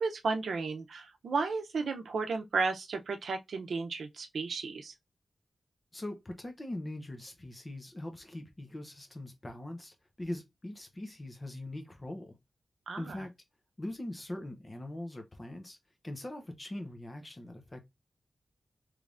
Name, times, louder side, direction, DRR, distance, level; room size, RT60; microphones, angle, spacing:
voice 1, 0.0-4.9 12.9-13.3, right 4 dB, 85° right, 0.6 m, -33 dB
voice 2, 5.9-12.4 13.0-13.3 13.8-15.8 16.0-17.8, left 1 dB, 20° left, 0.6 m, -41 dB
3.4 x 3.1 x 2.5 m
wide cardioid pair, 175°, 0 cm